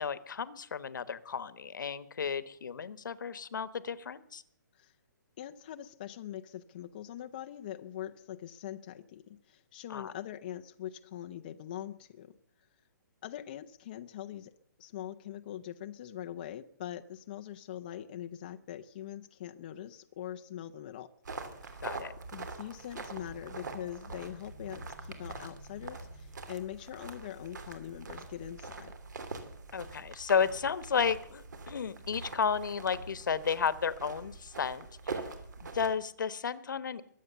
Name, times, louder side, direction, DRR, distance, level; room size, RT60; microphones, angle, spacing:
voice 1, 0.0-4.4 9.9-10.1 21.8-22.1 29.7-35.2 35.6-37.0, left 6 dB, 70° left, 15 dB, 1.2 m, -33 dB
voice 2, 5.4-12.4 13.2-14.5 14.8-21.1 21.6-21.8 22.3-28.9, left 11 dB, 25° left, 6 dB, 0.5 m, -43 dB
sound 1, 21.3-35.9, right 3 dB, 60° right, 3.0 m, -44 dB
22.5 x 8.4 x 6.9 m, 0.68 s
hypercardioid pair, 170°, 11 cm